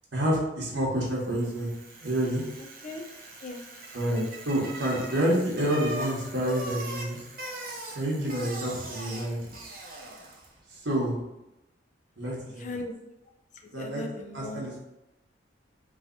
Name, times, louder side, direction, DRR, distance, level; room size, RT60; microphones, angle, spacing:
voice 1, 0.1-1.7 2.0-2.4 3.9-7.2 7.9-9.6 10.8-11.2 12.2-12.8 13.7-14.0 14.3-14.8, right 1 dB, 80° right, -4 dB, 1.5 m, -28 dB
Bicycle, 1.2-10.6, right 1 dB, 50° right, 0.8 m, -41 dB
voice 2, 12.6-12.9 13.6-14.6, left 2 dB, 40° left, 4 dB, 0.5 m, -38 dB
3.9 x 2.9 x 4.0 m, 0.95 s
head